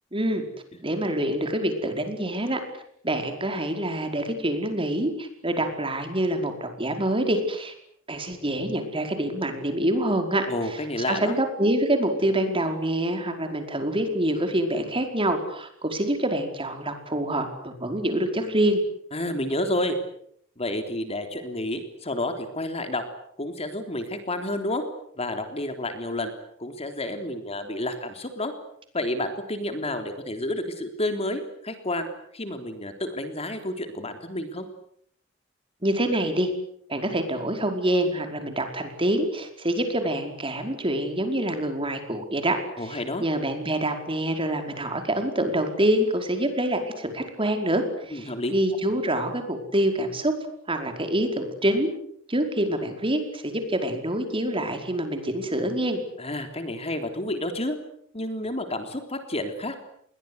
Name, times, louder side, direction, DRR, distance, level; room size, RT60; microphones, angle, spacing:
voice 1, 0.1-0.4 0.8-2.6 3.0-7.7 8.1-10.8 11.1-18.8 35.8-36.5 36.9-50.3 50.7-51.9 52.3-56.0, right 1 dB, 25° right, 5 dB, 5.1 m, -26 dB
voice 2, 10.5-11.4 19.1-20.0 20.6-23.0 23.4-24.8 25.2-26.3 26.6-28.5 28.9-32.1 32.3-34.7 42.8-43.2 48.1-48.5 56.2-57.8 58.1-59.8, left 1 dB, 30° left, 7 dB, 3.6 m, -30 dB
30.0 x 22.5 x 8.2 m, 0.68 s
head